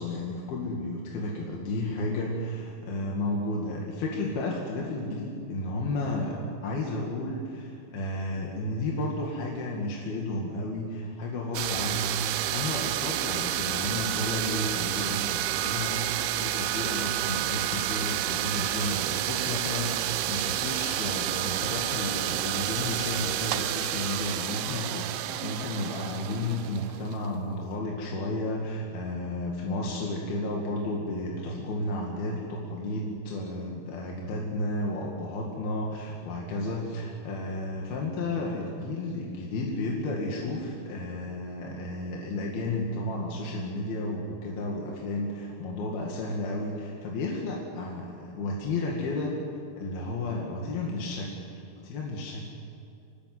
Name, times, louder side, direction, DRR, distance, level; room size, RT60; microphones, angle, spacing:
voice 1, 0.0-49.4 49.8-52.5, left 2 dB, 60° left, -2 dB, 3.7 m, -32 dB
sound 1, 11.5-27.3, right 12 dB, 80° right, 2.4 m, -30 dB
27.0 x 20.0 x 7.8 m, 2.5 s
omnidirectional pair, 5.4 m